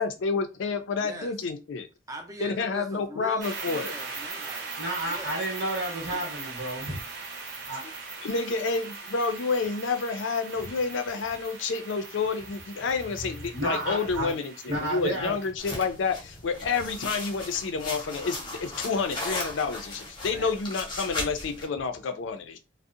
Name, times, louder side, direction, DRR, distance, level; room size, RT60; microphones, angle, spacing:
voice 1, 0.0-1.9 2.4-3.9 8.2-22.6, left 4 dB, 75° left, 0.4 m, -29 dB
voice 2, 1.0-1.3 2.1-4.7 5.0-5.4 7.6-7.7 20.3-20.5, right 1 dB, 20° right, 0.4 m, -41 dB
sound 1, 3.4-15.5, right 4 dB, 55° right, 0.7 m, -40 dB
voice 3, 4.8-7.0 7.7-7.8 13.5-14.3 14.7-15.3, right 1 dB, 75° right, 1.0 m, -31 dB
sound 2, 15.6-21.6, left 2 dB, 25° left, 0.7 m, -37 dB
2.6 x 2.0 x 2.4 m
head